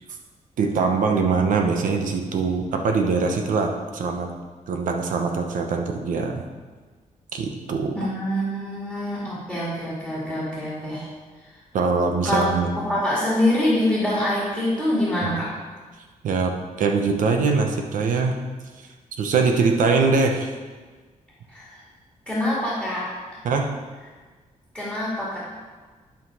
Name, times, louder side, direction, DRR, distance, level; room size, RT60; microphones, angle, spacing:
voice 1, 0.6-4.3 4.7-6.5 7.3-8.0 11.7-12.7 16.2-18.4 19.2-20.5 23.4-23.7, right 4 dB, 80° right, 4 dB, 1.0 m, -22 dB
voice 2, 7.9-11.1 11.4-11.5 12.2-12.4 12.8-15.5 21.5-21.8 22.3-23.1 24.7-25.4, left 1 dB, 10° right, -9 dB, 2.2 m, -25 dB
10.5 x 5.7 x 4.9 m, 1.4 s
wide cardioid pair, 180°, 13 cm